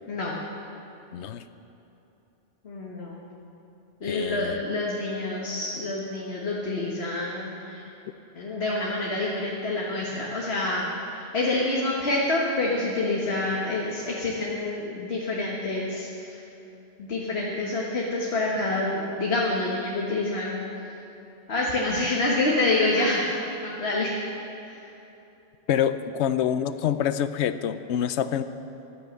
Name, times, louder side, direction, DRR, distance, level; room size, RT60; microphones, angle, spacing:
voice 1, 0.1-0.4 2.6-3.2 4.0-7.8 8.3-16.4 17.0-20.7 21.5-24.1 24.6-24.8, left 2 dB, 65° left, -3 dB, 1.7 m, -27 dB
voice 2, 1.1-1.4 4.0-4.6 25.7-28.4, left 9 dB, 85° left, 12 dB, 0.9 m, -26 dB
13.5 x 11.5 x 7.5 m, 2.9 s
omnidirectional pair, 1.1 m